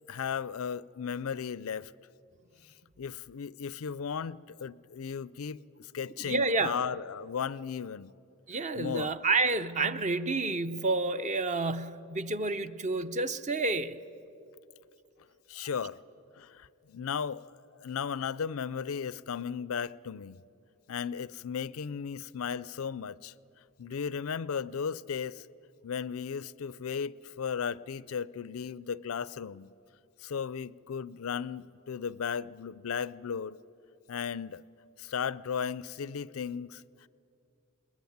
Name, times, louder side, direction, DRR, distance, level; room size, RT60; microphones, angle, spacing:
voice 1, 0.1-1.9 3.0-8.1 8.8-9.1 15.5-16.0 16.3-17.6 17.8-20.4 20.9-23.3 23.8-25.5 25.8-29.7 30.2-33.6 34.1-34.6 35.0-36.8, left 7 dB, 75° left, 0.5 m, -35 dB
voice 2, 6.2-6.8 8.5-14.0, right 3 dB, 35° right, 0.7 m, -29 dB
21.0 x 21.0 x 9.4 m
head